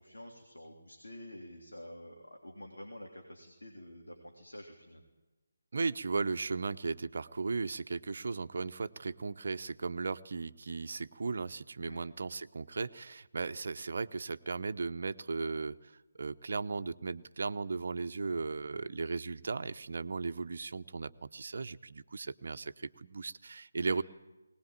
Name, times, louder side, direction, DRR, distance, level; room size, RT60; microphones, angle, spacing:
voice 1, 0.0-5.0 11.8-12.0 23.9-24.0, left 1 dB, 75° left, 2 dB, 3.3 m, -49 dB
voice 2, 5.7-24.0, right 4 dB, 50° right, 11 dB, 0.7 m, -36 dB
21.0 x 19.0 x 8.8 m, 1.1 s
figure-of-eight pair, 150°, 0 cm